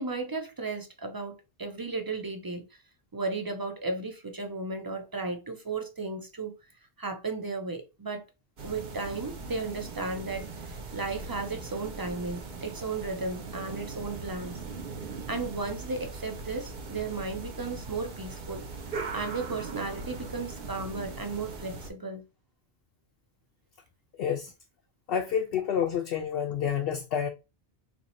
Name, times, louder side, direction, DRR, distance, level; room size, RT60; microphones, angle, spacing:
voice 1, 0.0-2.7 3.1-6.5 7.0-8.3 8.6-14.6 15.3-18.6 19.1-22.2, right 3 dB, 35° right, 0.3 m, -35 dB
sound 1, 8.6-21.9, right 3 dB, 55° right, 0.9 m, -40 dB
voice 2, 24.2-24.5 25.1-27.3, left 8 dB, 65° left, 0.7 m, -29 dB
2.8 x 2.6 x 4.0 m
omnidirectional pair, 1.1 m